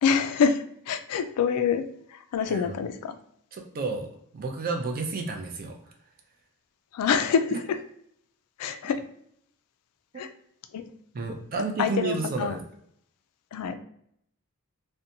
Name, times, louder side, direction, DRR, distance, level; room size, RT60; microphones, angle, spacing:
voice 1, 0.0-1.8 2.1-3.1 6.9-7.8 8.6-9.0 10.2-10.3 10.7-10.9 11.8-12.6 13.5-13.7, left 6 dB, 85° left, 9 dB, 0.3 m, -26 dB
voice 2, 3.5-4.1 4.3-5.8 7.5-7.6 8.8-9.0 10.1-10.2 11.1-12.6, right 3 dB, 40° right, 3 dB, 0.4 m, -31 dB
2.6 x 2.2 x 2.7 m, 0.70 s
head